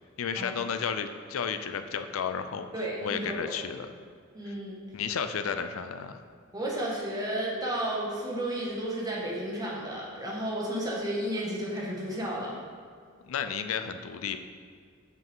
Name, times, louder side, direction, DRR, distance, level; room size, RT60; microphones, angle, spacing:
voice 1, 0.2-2.7 3.0-3.9 4.4-4.6 4.9-6.2 13.2-14.4, left 6 dB, 85° left, 9 dB, 0.5 m, -32 dB
voice 2, 2.7-3.5 4.3-4.7 6.5-12.5, right 1 dB, 20° right, -4 dB, 1.4 m, -32 dB
8.2 x 5.6 x 3.6 m, 2.1 s
head